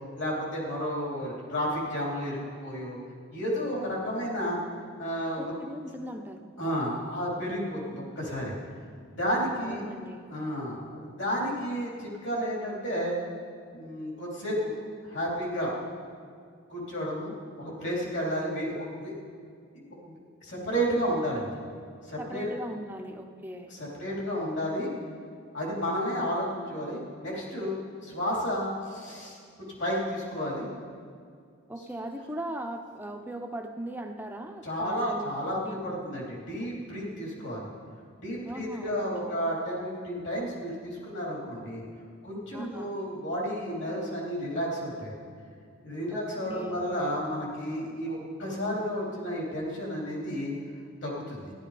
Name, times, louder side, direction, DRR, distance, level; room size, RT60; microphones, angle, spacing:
voice 1, 0.2-3.0 3.3-4.6 5.0-5.5 6.6-8.5 9.1-9.8 10.3-13.1 13.7-14.7 15.0-15.7 16.7-19.1 19.8-20.1 20.4-21.5 22.1-22.5 23.7-24.9 25.5-29.4 29.8-30.7 34.6-37.7 38.2-41.8 42.2-45.1 45.8-50.5 51.0-51.5, equal, 55° left, -4 dB, 3.4 m, -32 dB
voice 2, 5.4-6.4 9.6-10.3 22.2-23.7 31.7-36.0 36.6-36.7 38.5-39.3 42.5-42.9 46.1-46.9, right 1 dB, 10° right, 4 dB, 0.7 m, -39 dB
14.0 x 12.0 x 5.0 m, 2.3 s
head